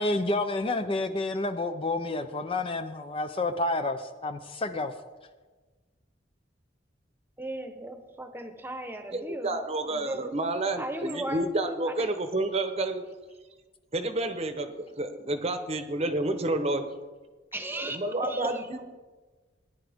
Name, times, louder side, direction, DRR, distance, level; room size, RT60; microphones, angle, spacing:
voice 1, 0.0-4.9, left 2 dB, 30° left, 8 dB, 0.5 m, -29 dB
voice 2, 7.4-9.6 9.9-10.3 10.8-11.5 11.8-12.1 17.5-18.6, right 1 dB, 10° right, 7 dB, 1.0 m, -36 dB
voice 3, 9.1-13.0 13.9-16.9 17.8-18.9, right 2 dB, 35° right, 8 dB, 0.9 m, -30 dB
18.0 x 10.5 x 3.5 m, 1.3 s
head